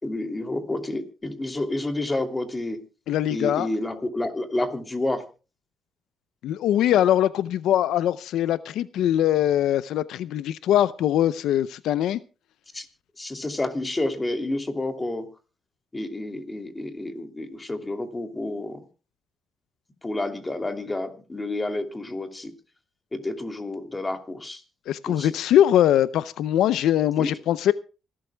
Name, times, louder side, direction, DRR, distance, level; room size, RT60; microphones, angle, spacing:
voice 1, 0.0-2.8 3.3-5.3 12.7-12.9 13.2-15.3 15.9-18.8 20.0-22.5 23.1-24.6 25.1-25.3 27.2-27.3, left 2 dB, 20° left, 2.8 m, -29 dB
voice 2, 3.1-3.7 6.4-12.2 24.9-27.7, left 11 dB, 80° left, 0.6 m, -22 dB
26.5 x 12.5 x 2.3 m
cardioid pair, 90°, 0 cm